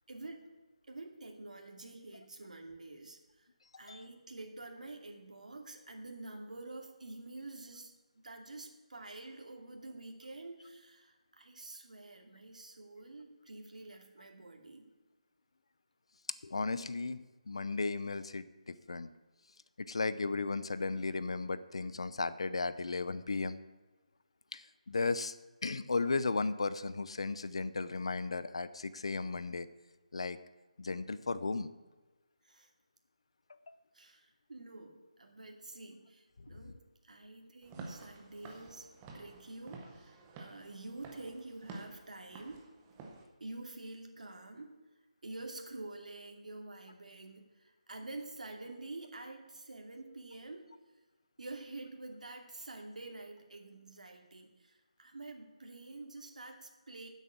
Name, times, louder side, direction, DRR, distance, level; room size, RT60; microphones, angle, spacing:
voice 1, 0.1-0.5 0.9-3.5 3.8-14.9 32.4-32.7 33.9-36.8 37.0-38.9 39.1-42.6 43.4-44.7 45.2-50.7 51.4-57.1, right 2 dB, 75° right, 3 dB, 2.5 m, -48 dB
voice 2, 16.4-19.1 19.8-23.6 24.5-25.4 25.6-29.7 30.1-30.4 30.8-31.7 33.7-33.8 36.4-36.5, left 3 dB, 50° left, 14 dB, 0.6 m, -35 dB
Walk footsteps / Siren, 37.6-43.2, right 3 dB, 10° right, 0.7 m, -51 dB
9.8 x 8.3 x 8.4 m, 1.2 s
hypercardioid pair, 180°, 4 cm